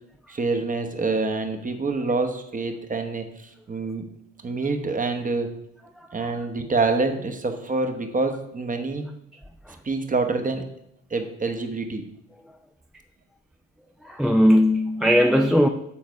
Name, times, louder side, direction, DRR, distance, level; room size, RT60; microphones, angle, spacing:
voice 1, 0.3-4.1 4.4-5.5 6.1-9.0 9.8-10.7 11.1-12.0, right 3 dB, 25° right, 6 dB, 1.0 m, -26 dB
voice 2, 6.0-6.3 14.0-15.7, equal, ahead, 3 dB, 0.4 m, -19 dB
7.3 x 4.0 x 4.6 m, 0.75 s
cardioid pair, 85°, 30 cm